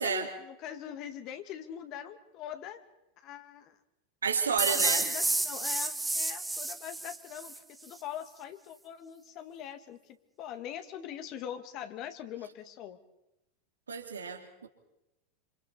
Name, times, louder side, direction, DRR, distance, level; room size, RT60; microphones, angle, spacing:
voice 1, 0.0-2.8 3.2-3.8 4.7-13.0, left 10 dB, 40° left, 8 dB, 2.0 m, -42 dB
voice 2, 4.2-5.1 13.9-14.7, right 6 dB, 75° right, 4 dB, 3.0 m, -30 dB
sound 1, 4.6-7.6, right 2 dB, 10° right, 1.1 m, -31 dB
27.5 x 27.5 x 4.3 m, 0.89 s
figure-of-eight pair, 85°, 0 cm